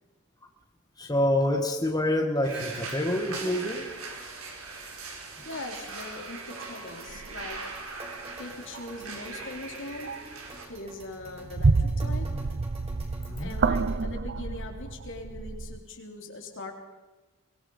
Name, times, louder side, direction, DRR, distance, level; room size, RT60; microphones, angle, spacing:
voice 1, 1.0-3.9 13.3-13.6, left 1 dB, 15° left, 2 dB, 1.9 m, -27 dB
sound 1, 2.4-10.7, right 3 dB, 65° right, 4.9 m, -40 dB
voice 2, 5.4-7.7 8.4-10.3 10.7-12.4 13.4-16.7, left 2 dB, 60° left, 3 dB, 3.6 m, -41 dB
sound 2, 5.4-14.0, right 2 dB, 30° right, 4.3 m, -50 dB
sound 3, 7.1-7.6 8.7-8.9 9.3-9.7 10.0-10.4 10.8-15.8, right 3 dB, 50° right, 0.7 m, -28 dB
24.0 x 21.0 x 5.6 m, 1.2 s
head